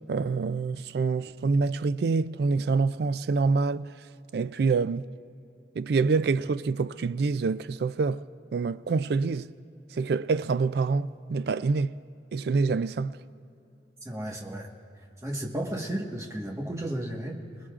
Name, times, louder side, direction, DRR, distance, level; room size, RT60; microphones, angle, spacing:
voice 1, 0.1-3.9 4.3-5.1 5.8-8.2 8.5-9.5 9.9-12.0 12.3-13.2, right 4 dB, 60° right, 0.3 m, -26 dB
voice 2, 14.0-14.7 14.9-17.7, right 1 dB, 15° right, 1.4 m, -34 dB
28.0 x 20.0 x 2.5 m
head